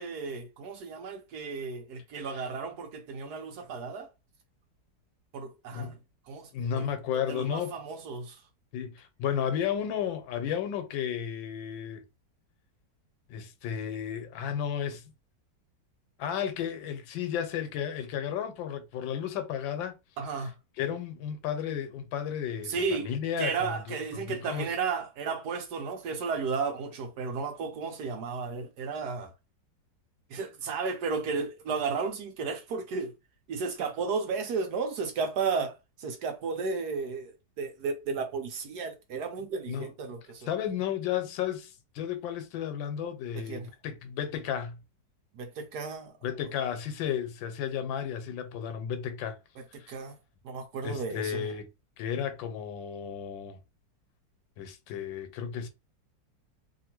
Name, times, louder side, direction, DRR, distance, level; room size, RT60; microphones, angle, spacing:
voice 1, 0.0-4.1 5.3-6.0 6.3-6.9 7.3-8.4 20.2-20.5 22.6-23.1 23.4-29.3 30.3-33.1 33.5-40.5 43.5-43.7 45.3-46.1 49.9-50.2 50.4-51.4, right 5 dB, 70° right, 1.1 m, -33 dB
voice 2, 6.5-7.8 8.7-12.0 13.3-15.0 16.2-20.0 20.8-24.7 39.7-39.9 40.5-44.8 46.2-49.4 49.8-49.9 50.8-51.7 52.0-53.6 54.6-55.7, left 8 dB, 85° left, 1.4 m, -33 dB
2.8 x 2.7 x 2.9 m
omnidirectional pair, 2.0 m